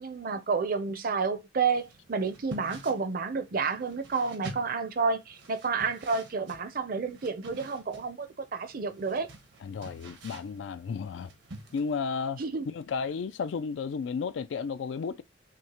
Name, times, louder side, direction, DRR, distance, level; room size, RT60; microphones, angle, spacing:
voice 1, 0.0-9.3 12.4-12.7, right 4 dB, 50° right, 0.5 m, -30 dB
sound 1, 1.7-12.0, right 2 dB, 85° right, 1.1 m, -49 dB
voice 2, 9.6-11.3 11.7-15.2, left 5 dB, 75° left, 0.3 m, -33 dB
5.9 x 2.1 x 2.9 m
head